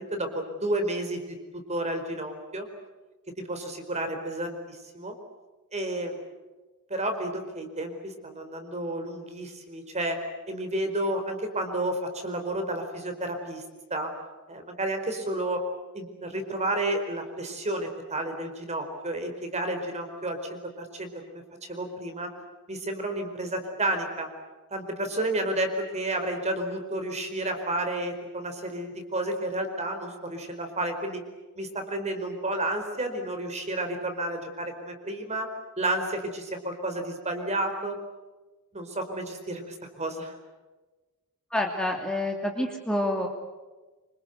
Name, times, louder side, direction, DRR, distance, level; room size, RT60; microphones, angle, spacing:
voice 1, 0.0-2.7 3.4-5.1 5.7-6.2 6.9-10.2 10.5-13.6 13.9-14.1 14.5-15.6 15.9-21.4 21.7-22.3 22.7-24.3 24.7-31.2 31.6-35.5 35.8-38.0 38.7-40.4, right 1 dB, 30° right, 6 dB, 4.6 m, -31 dB
voice 2, 41.5-43.3, left 1 dB, 5° left, 1 dB, 2.7 m, -28 dB
27.0 x 26.0 x 8.1 m, 1.2 s
head